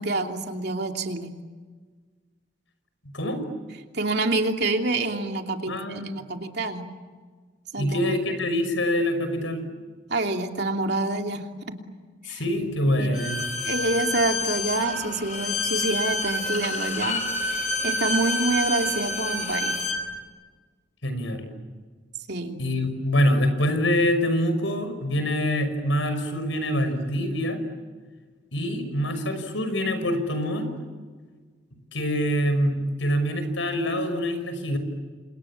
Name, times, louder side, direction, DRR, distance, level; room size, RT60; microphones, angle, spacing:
voice 1, 0.0-1.3 3.9-6.9 7.7-8.1 10.1-11.8 12.2-12.4 13.0-13.2 13.6-19.8 22.3-22.6, right 2 dB, 60° right, 3 dB, 2.9 m, -27 dB
voice 2, 5.7-6.2 7.8-9.6 12.3-13.5 21.0-21.4 22.6-27.6 28.5-30.7 31.9-34.8, equal, 80° left, 9 dB, 5.9 m, -25 dB
Bowed string instrument, 13.1-20.0, left 2 dB, 40° left, 4.4 m, -28 dB
29.5 x 27.5 x 7.4 m, 1.5 s
head